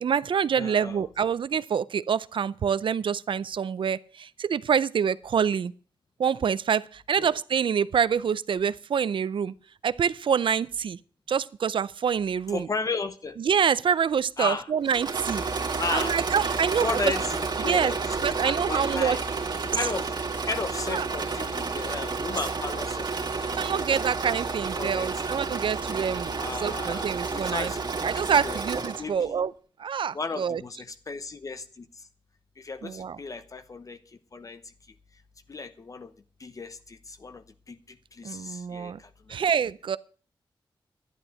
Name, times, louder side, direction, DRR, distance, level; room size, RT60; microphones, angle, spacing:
voice 1, 0.0-5.7 6.2-9.5 9.8-11.0 11.3-12.7 13.4-15.4 15.9-16.9 17.6-17.9 18.2-19.2 20.9-21.1 23.5-26.3 26.6-27.7 28.0-29.5 29.8-30.6 32.8-33.2 38.2-39.0 39.3-40.0, right 7 dB, 70° right, 0.5 m, -26 dB
voice 2, 0.5-1.1 7.2-7.3 12.5-13.4 14.4-14.7 15.8-16.2 16.8-19.2 19.7-20.1 20.5-24.1 24.8-25.1 26.4-27.8 28.2-28.6 29.0-29.4 30.1-31.8 32.6-34.0 34.3-34.6 35.5-36.1 36.4-37.4 37.7-37.8 38.2-38.9, left 3 dB, 40° left, 0.9 m, -34 dB
Engine / Mechanisms, 14.8-29.1, right 4 dB, 50° right, 2.3 m, -31 dB
12.0 x 10.5 x 6.4 m
wide cardioid pair, 120°, 9 cm